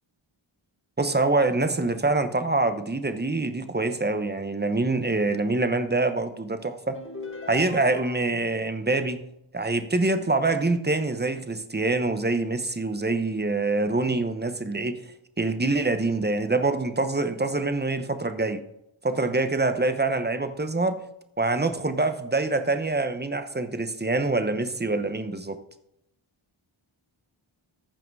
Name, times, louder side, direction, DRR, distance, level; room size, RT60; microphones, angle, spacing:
voice 1, 1.0-7.0 7.5-9.2 9.5-15.0 15.4-18.6 19.0-21.0 21.4-25.6, right 2 dB, 20° right, 1.0 m, -25 dB
sound 1, 6.9-8.4, left 3 dB, 25° left, 1.8 m, -40 dB
14.5 x 5.7 x 4.8 m
wide cardioid pair, 80°, 48 cm